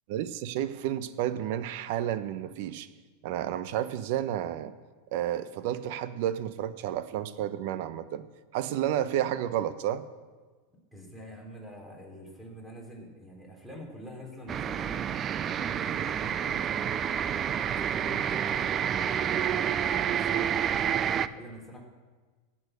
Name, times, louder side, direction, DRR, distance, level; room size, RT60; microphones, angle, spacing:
voice 1, 0.1-2.9 3.2-4.7 5.1-8.2 8.5-10.0, right 11 dB, 65° right, 13 dB, 0.9 m, -31 dB
voice 2, 10.9-15.3 15.6-19.4 19.9-21.9, equal, 5° right, 0 dB, 3.8 m, -46 dB
sound 1, 14.5-21.3, right 9 dB, 30° right, 0.5 m, -29 dB
16.0 x 8.8 x 6.8 m, 1.4 s
hypercardioid pair, 115°, 0 cm